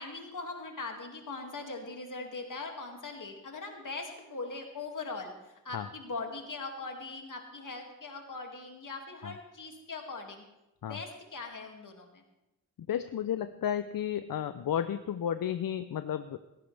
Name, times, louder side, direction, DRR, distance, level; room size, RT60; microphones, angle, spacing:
voice 1, 0.0-10.4 10.9-12.2, left 3 dB, 65° left, 2 dB, 2.3 m, -41 dB
voice 2, 12.9-16.4, left 9 dB, 80° left, 11 dB, 0.5 m, -32 dB
17.0 x 15.0 x 3.4 m, 0.98 s
cardioid pair, 60°, 34 cm